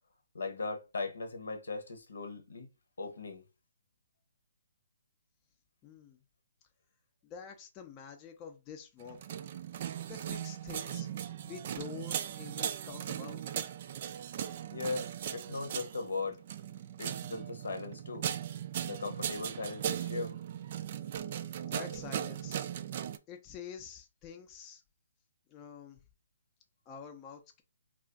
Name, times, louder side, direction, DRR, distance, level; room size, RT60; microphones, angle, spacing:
voice 1, 0.3-2.7 3.0-3.4 14.7-16.4 17.0-18.2 18.9-20.3, left 3 dB, 80° left, 0.9 m, -38 dB
voice 2, 5.8-6.2 7.2-9.2 10.1-11.1 11.4-13.4 21.6-22.6 23.3-24.8 25.5-26.0 26.9-27.6, left 7 dB, 25° left, 0.5 m, -47 dB
sound 1, 9.0-23.2, right 10 dB, 45° right, 0.3 m, -38 dB
2.4 x 2.3 x 3.8 m
hypercardioid pair, 145°, 0 cm